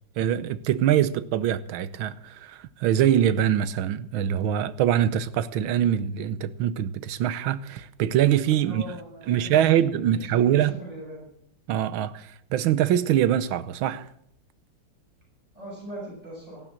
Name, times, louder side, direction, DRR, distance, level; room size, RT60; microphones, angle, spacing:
voice 1, 0.2-8.8 9.3-10.7 11.7-14.1, right 10 dB, 75° right, 1.6 m, -23 dB
voice 2, 8.6-11.3 15.5-16.6, equal, 15° right, 7.3 m, -40 dB
15.0 x 12.0 x 7.5 m
omnidirectional pair, 2.3 m